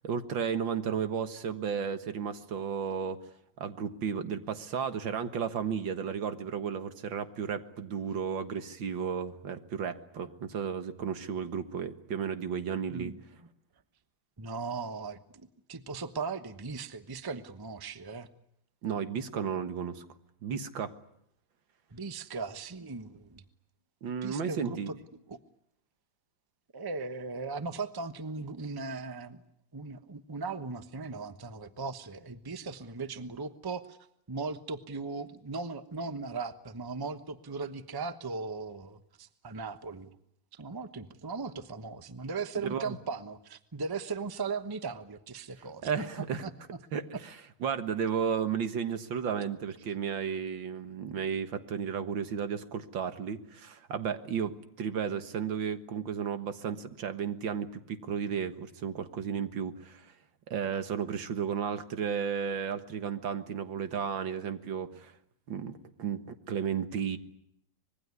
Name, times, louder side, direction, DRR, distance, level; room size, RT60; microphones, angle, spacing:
voice 1, 0.0-3.2 3.6-13.1 18.8-20.1 20.4-20.9 24.0-24.9 42.7-43.0 45.8-46.4 46.9-47.4 47.6-60.1 60.5-65.1 65.5-67.2, right 7 dB, 85° right, 9 dB, 2.2 m, -33 dB
voice 2, 12.9-13.2 14.4-18.3 21.9-23.4 24.2-25.0 25.3-25.4 26.7-29.4 29.7-34.0 34.3-40.1 40.5-45.9 46.2-46.5, right 4 dB, 15° right, 11 dB, 0.8 m, -38 dB
25.5 x 21.5 x 9.7 m, 0.75 s
omnidirectional pair, 2.0 m